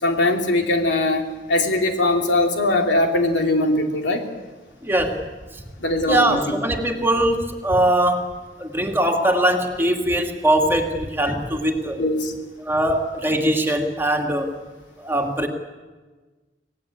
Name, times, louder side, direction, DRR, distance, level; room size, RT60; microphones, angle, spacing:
voice 1, 0.0-4.2 5.8-6.5 12.0-12.3, left 2 dB, 90° left, 3 dB, 2.8 m, -21 dB
voice 2, 4.8-5.3 6.0-12.0 12.6-14.5 15.0-15.5, right 1 dB, 15° right, 2 dB, 2.3 m, -21 dB
25.0 x 18.5 x 8.6 m, 1.3 s
head